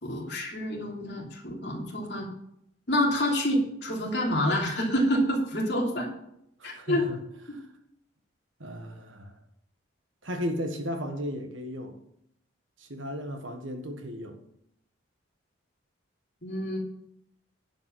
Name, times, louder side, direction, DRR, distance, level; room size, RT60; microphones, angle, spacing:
voice 1, 0.0-2.3 2.9-6.1 6.6-7.0 16.4-16.8, equal, 55° left, 3.1 m, -27 dB
voice 2, 6.6-7.1 7.5-7.6 8.6-9.3 10.2-12.0 12.8-14.4, equal, 75° right, 1.5 m, -35 dB
10.5 x 5.5 x 7.4 m
head